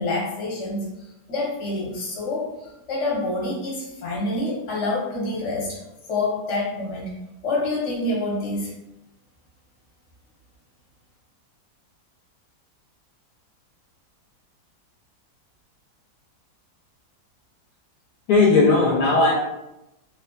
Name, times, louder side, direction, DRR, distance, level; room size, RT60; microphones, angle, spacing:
voice 1, 0.0-5.8 6.1-7.1 7.4-8.7, left 2 dB, 50° left, -5 dB, 1.1 m, -27 dB
voice 2, 18.3-19.3, left 3 dB, 75° left, -4 dB, 1.2 m, -17 dB
2.8 x 2.4 x 2.2 m, 0.91 s
omnidirectional pair, 1.8 m